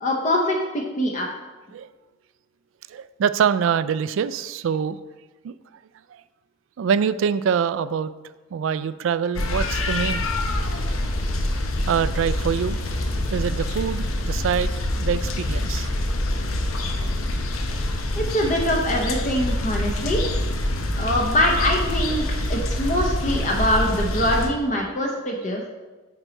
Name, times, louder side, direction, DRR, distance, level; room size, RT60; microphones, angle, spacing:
voice 1, 0.0-1.3 18.1-20.2 21.0-22.2 22.5-25.7, equal, 40° left, 0 dB, 0.8 m, -23 dB
voice 2, 2.9-5.0 5.4-5.5 6.8-8.1 8.5-10.2 11.9-12.8 13.3-14.7 15.0-15.9, right 7 dB, 65° right, 15 dB, 0.3 m, -24 dB
sound 1, 9.3-24.5, left 1 dB, 90° left, 0.8 m, -25 dB
9.1 x 3.9 x 4.4 m, 1.2 s
head